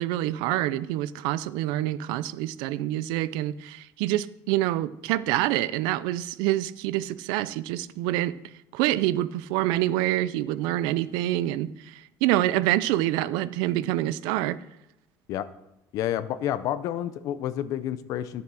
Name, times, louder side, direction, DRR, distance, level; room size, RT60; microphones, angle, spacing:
voice 1, 0.0-8.4 8.7-14.6, right 14 dB, 80° right, 0.5 m, -26 dB
voice 2, 15.9-18.4, left 11 dB, 45° left, 0.6 m, -29 dB
12.5 x 7.0 x 6.3 m
cardioid pair, 175°, 8 cm